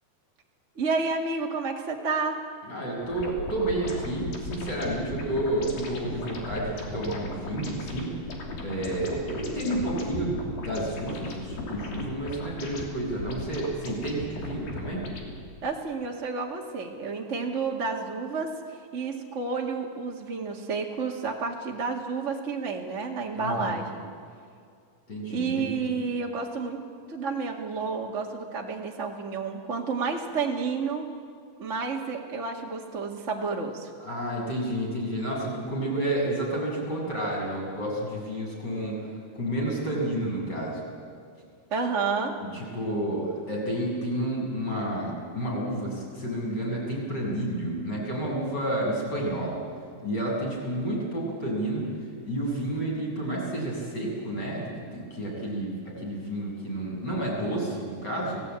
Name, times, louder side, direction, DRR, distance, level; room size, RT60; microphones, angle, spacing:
voice 1, 0.7-2.4 15.6-24.0 25.3-26.8 27.1-31.1 31.6-33.9 41.7-42.3, right 4 dB, 30° right, -1 dB, 1.5 m, -30 dB
voice 2, 2.7-8.1 8.6-15.0 23.3-23.8 25.1-25.9 34.0-39.0 39.3-40.8 42.4-49.6 50.0-51.9 52.2-58.4, right 1 dB, 25° left, -3 dB, 7.7 m, -30 dB
sound 1, 3.0-15.4, left 2 dB, 70° left, 4.8 m, -37 dB
30.0 x 18.0 x 9.0 m, 2.3 s
omnidirectional pair, 4.3 m